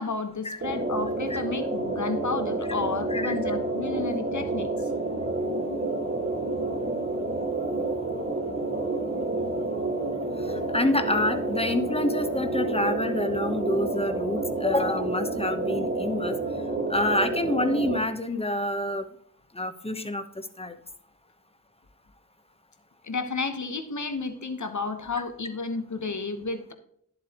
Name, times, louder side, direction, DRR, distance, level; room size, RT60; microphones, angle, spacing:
voice 1, 0.0-4.9 23.0-26.7, left 4 dB, 65° left, 8 dB, 1.2 m, -32 dB
sound 1, 0.6-18.0, right 2 dB, 40° right, 1.5 m, -29 dB
voice 2, 10.4-16.4 16.9-19.1 19.5-20.7, left 1 dB, 20° left, 8 dB, 1.0 m, -27 dB
11.0 x 7.7 x 3.0 m, 0.69 s
wide cardioid pair, 50°, 31 cm